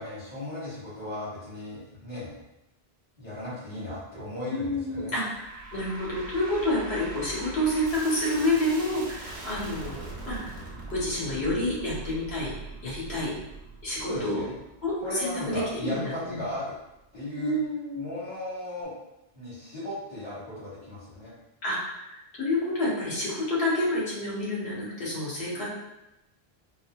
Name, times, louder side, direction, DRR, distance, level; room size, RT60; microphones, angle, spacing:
voice 1, 0.0-2.4 3.2-5.2 14.1-14.5 15.0-16.8 17.1-17.5 17.9-18.9 19.3-21.3, left 1 dB, 30° left, -13 dB, 1.2 m, -36 dB
voice 2, 4.5-10.0 10.2-10.5 10.9-12.5 12.8-13.3 13.8-14.4 14.8-16.4 17.4-18.0 21.6-25.7, left 1 dB, 90° left, -6 dB, 1.3 m, -29 dB
sound 1, 5.3-16.6, right 2 dB, 90° right, 1.0 m, -42 dB
3.8 x 2.3 x 2.2 m, 0.91 s
omnidirectional pair, 1.1 m